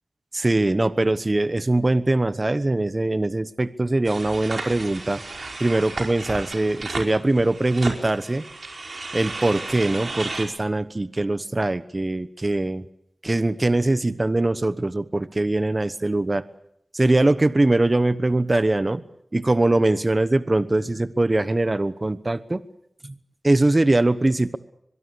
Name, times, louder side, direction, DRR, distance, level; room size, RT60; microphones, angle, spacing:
voice 1, 0.3-5.2 5.6-8.4 9.1-12.8 13.2-16.4 16.9-19.0 19.3-22.6 23.0-23.1 23.4-24.6, right 2 dB, 30° right, 13 dB, 1.1 m, -22 dB
sound 1, 4.0-10.5, right 3 dB, 60° right, 5.1 m, -34 dB
23.0 x 22.5 x 8.3 m, 0.75 s
wide cardioid pair, 75°, 0 cm